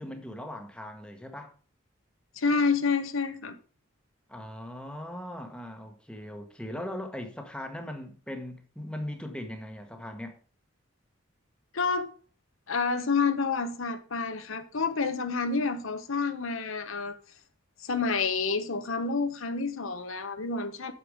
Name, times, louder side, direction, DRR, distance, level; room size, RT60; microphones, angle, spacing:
voice 1, 0.0-1.5 4.3-10.3, left 1 dB, 5° left, 1.2 m, -39 dB
voice 2, 2.4-3.6 11.7-12.1 12.7-17.2 17.8-20.9, left 4 dB, 80° left, 1.0 m, -29 dB
8.2 x 6.9 x 5.0 m
head